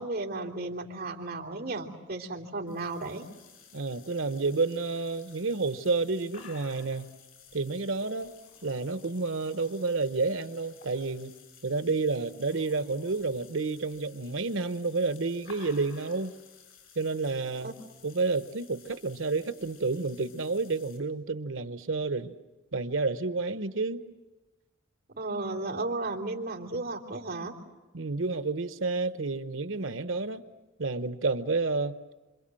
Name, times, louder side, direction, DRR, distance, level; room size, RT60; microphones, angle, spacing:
voice 1, 0.0-3.2 17.6-17.7 25.1-27.5, right 2 dB, 45° right, 3.3 m, -34 dB
sound 1, 2.7-21.0, left 7 dB, 85° left, 7.4 m, -56 dB
voice 2, 3.7-7.1 7.5-8.3 8.6-11.3 11.6-16.3 17.0-17.7 18.0-22.3 22.7-24.0 27.9-30.4 30.8-31.9, right 3 dB, 80° right, 1.0 m, -30 dB
sound 2, 5.9-6.0 6.2-7.1 8.1-9.9 10.8-11.1 11.4-11.5 12.1-13.3 14.8-16.3 17.5-17.7, left 4 dB, 70° left, 5.1 m, -53 dB
27.0 x 26.5 x 7.7 m
head